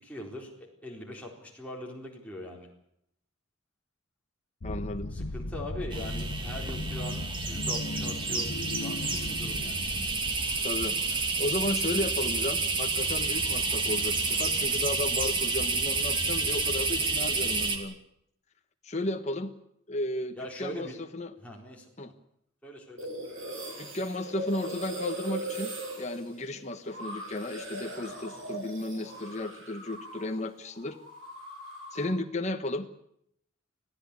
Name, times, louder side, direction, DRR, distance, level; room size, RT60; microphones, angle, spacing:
voice 1, 0.0-2.7 5.1-8.5 8.8-9.9 20.4-21.0 21.4-22.1 22.6-23.1, left 1 dB, 5° left, -2 dB, 4.2 m, -41 dB
sound 1, 4.6-11.4, left 1 dB, 80° left, 1.4 m, -37 dB
voice 2, 4.6-5.1 10.6-18.0 18.8-19.5 19.9-21.3 22.0-22.1 23.8-31.0 31.9-32.9, left 1 dB, 35° left, 5 dB, 1.3 m, -34 dB
sound 2, 5.9-17.8, right 3 dB, 25° right, 2.6 m, -29 dB
sound 3, 23.0-30.4 30.6-32.2, right 1 dB, 70° right, 7.2 m, -39 dB
25.5 x 16.0 x 8.4 m, 0.75 s
head